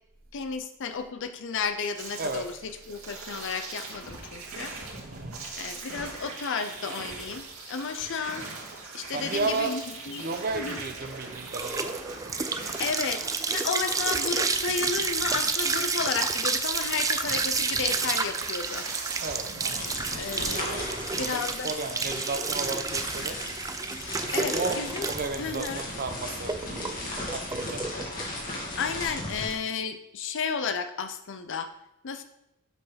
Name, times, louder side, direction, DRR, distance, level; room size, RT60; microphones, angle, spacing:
voice 1, 0.3-4.7 5.6-8.5 8.9-10.8 12.8-13.2 13.5-18.9 20.1-20.9 21.2-21.8 24.3-25.1 25.4-25.8 28.8-31.7 32.0-32.2, left 5 dB, 60° left, 9 dB, 0.6 m, -32 dB
sound 1, 1.9-19.8, right 3 dB, 80° right, 2.3 m, -41 dB
voice 2, 5.0-5.5 9.1-9.7 10.2-12.0 19.2-20.0 20.6-23.4 24.5-26.9 27.3-27.8, right 3 dB, 45° right, 7 dB, 0.8 m, -34 dB
sound 2, 10.5-29.6, right 4 dB, 15° right, 0.4 m, -30 dB
sound 3, 19.7-29.5, left 1 dB, 40° left, 2.1 m, -37 dB
8.0 x 4.6 x 5.7 m, 0.86 s
head